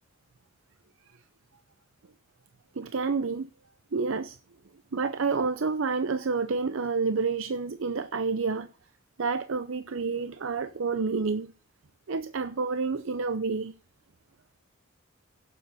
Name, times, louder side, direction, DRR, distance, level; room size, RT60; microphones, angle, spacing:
voice 1, 2.7-3.5 3.9-4.4 4.9-8.7 9.2-11.5 12.1-13.7, right 4 dB, 70° right, 0.6 m, -29 dB
11.5 x 7.7 x 6.3 m
head